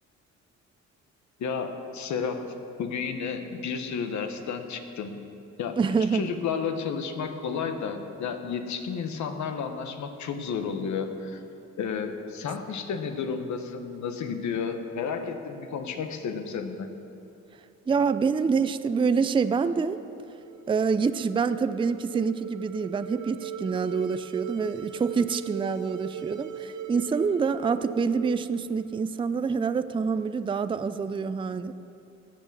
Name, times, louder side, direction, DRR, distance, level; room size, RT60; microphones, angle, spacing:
voice 1, 1.4-2.5 2.8-5.2 5.6-5.8 6.1-11.4 11.8-16.9, left 6 dB, 70° left, 7 dB, 1.2 m, -32 dB
voice 2, 5.8-6.3 17.9-20.0 20.7-31.7, right 5 dB, 15° right, 12 dB, 0.4 m, -26 dB
sound 1, 20.3-29.5, right 7 dB, 70° right, 0.9 m, -39 dB
17.0 x 6.0 x 7.3 m, 2.7 s
cardioid pair, 90°, 30 cm